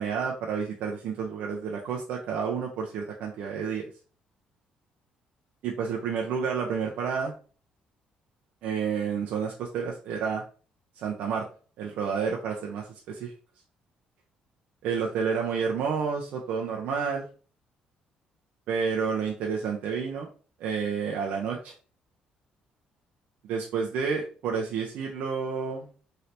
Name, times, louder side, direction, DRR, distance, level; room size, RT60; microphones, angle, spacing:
voice 1, 0.0-3.8 5.6-7.3 8.6-10.4 11.0-11.5 11.8-13.3 14.8-17.3 18.7-20.3 20.6-21.7 23.5-25.9, right 6 dB, 75° right, -1 dB, 0.6 m, -30 dB
3.2 x 2.8 x 2.7 m, 0.38 s
cardioid pair, 115°, 3 cm